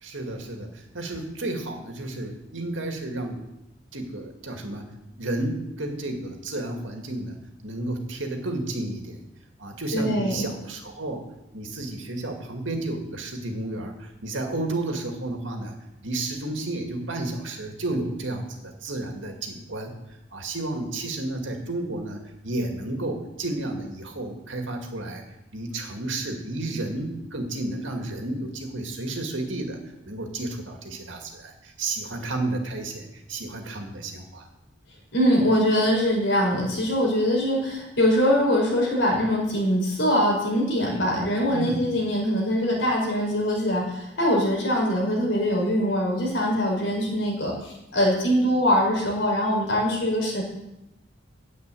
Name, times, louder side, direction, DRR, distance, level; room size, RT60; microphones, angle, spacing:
voice 1, 0.0-3.4 3.9-4.9 5.2-7.4 7.6-9.2 9.6-11.2 11.5-15.8 16.0-19.9 20.3-25.2 25.5-29.8 30.0-34.5 41.5-41.9, right 2 dB, 75° right, 3 dB, 2.2 m, -32 dB
voice 2, 9.9-10.5 35.1-50.4, equal, 70° left, -2 dB, 4.9 m, -23 dB
9.7 x 8.3 x 8.4 m, 0.89 s
head